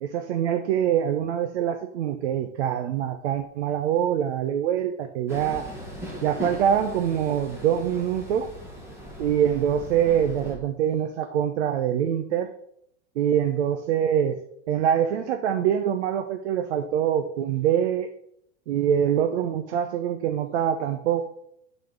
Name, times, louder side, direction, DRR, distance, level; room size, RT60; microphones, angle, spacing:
voice 1, 0.0-5.7 6.2-8.5 9.2-12.5 13.2-14.4 14.7-18.1 18.7-21.2, right 9 dB, 70° right, 7 dB, 0.8 m, -24 dB
Train, 5.3-10.5, equal, 10° right, 1.6 m, -39 dB
6.8 x 4.3 x 6.6 m, 0.72 s
supercardioid pair, 165°, 34 cm